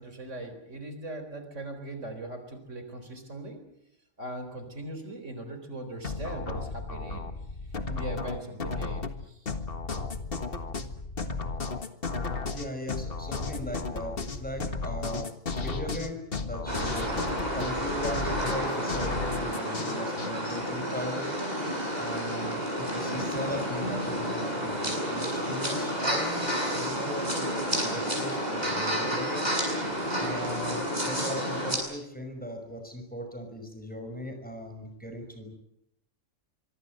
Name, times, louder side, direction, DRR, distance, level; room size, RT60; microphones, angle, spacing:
voice 1, 0.0-3.6 4.2-7.3 7.9-9.5, right 2 dB, 65° right, 7 dB, 4.4 m, -39 dB
sound 1, 6.0-20.3, left 4 dB, 45° left, 1.9 m, -34 dB
voice 2, 12.5-15.3 15.6-17.2 17.5-21.3 22.0-29.5 30.2-35.5, equal, 5° left, 5 dB, 5.8 m, -38 dB
sound 2, 16.7-31.8, equal, 30° right, 8.3 m, -30 dB
24.5 x 24.5 x 7.8 m, 0.79 s
omnidirectional pair, 1.4 m